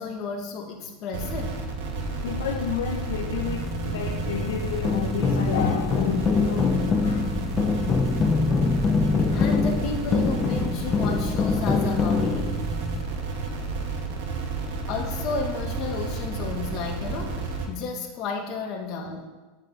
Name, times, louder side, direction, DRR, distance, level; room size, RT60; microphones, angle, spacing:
voice 1, 0.0-1.6 9.3-12.5 14.9-19.3, left 4 dB, 45° left, 2.2 m, -32 dB
sound 1, 1.1-17.7, right 3 dB, 75° right, 2.4 m, -31 dB
voice 2, 2.2-7.4, left 8 dB, 90° left, 1.0 m, -31 dB
sound 2, 3.4-13.0, left 1 dB, ahead, 0.6 m, -32 dB
sound 3, 4.4-12.6, left 5 dB, 25° left, 0.9 m, -25 dB
8.9 x 6.1 x 8.4 m
supercardioid pair, 130°, 0 cm